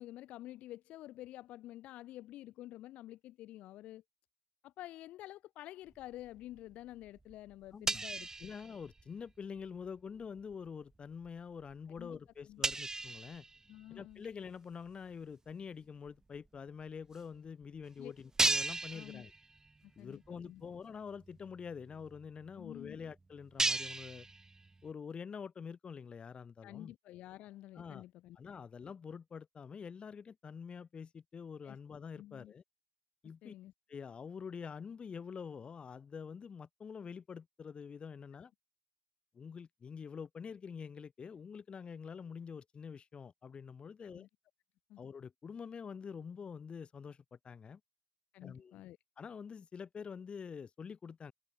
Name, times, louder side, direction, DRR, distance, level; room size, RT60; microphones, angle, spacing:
voice 1, 0.0-4.0 4.6-8.5 11.9-12.2 12.5-12.6 13.7-14.2 18.0-18.1 18.9-19.2 20.0-20.6 22.6-23.0 26.6-28.4 31.6-31.8 32.2-32.5 33.4-33.7 44.1-44.3 44.9-45.0 48.3-49.0, left 15 dB, 70° left, 1.1 m, -49 dB
sound 1, 6.0-6.7 7.0-9.3 9.6-9.9 10.4-10.7 11.2-11.3 11.7-11.8 12.0-12.1 12.6-14.3 14.9-15.0 16.1-16.2 16.3-16.5 17.1-17.2 17.6-17.7 18.3-19.8 20.1-20.3 20.8-20.9 21.1-24.9, right 3 dB, 25° right, 0.6 m, -37 dB
voice 2, 7.7-8.1 8.4-13.5 13.9-19.3 20.0-24.3 24.8-27.0 27.8-28.0 28.4-32.6 33.2-33.5 33.9-38.5 39.3-44.3 45.0-47.8 48.4-48.7 49.2-51.3, left 6 dB, 50° left, 2.0 m, -46 dB
hypercardioid pair, 40°, 2 cm